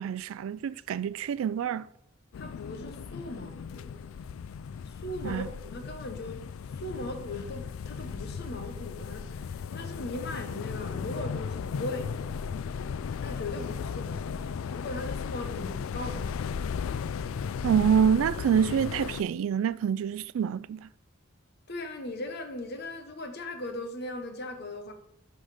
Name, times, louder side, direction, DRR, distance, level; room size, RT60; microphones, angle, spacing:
voice 1, 0.0-1.9 5.2-5.5 17.6-20.9, right 7 dB, 80° right, 0.3 m, -26 dB
sound 1, 2.3-19.2, left 6 dB, 90° left, 0.3 m, -36 dB
voice 2, 2.4-4.1 4.9-6.5 6.8-12.2 13.2-16.4 21.7-24.9, left 1 dB, 55° left, 1.2 m, -39 dB
11.0 x 4.0 x 5.0 m
head